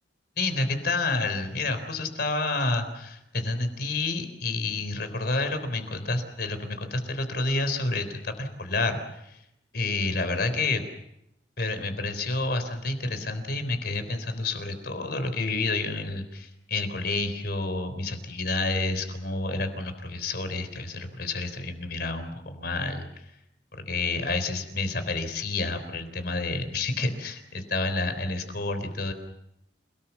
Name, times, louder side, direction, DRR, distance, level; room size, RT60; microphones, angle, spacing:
voice 1, 0.4-9.4 9.7-10.8 11.6-23.0 23.9-29.1, left 3 dB, 60° left, 9 dB, 3.7 m, -29 dB
29.0 x 18.5 x 7.1 m, 0.84 s
head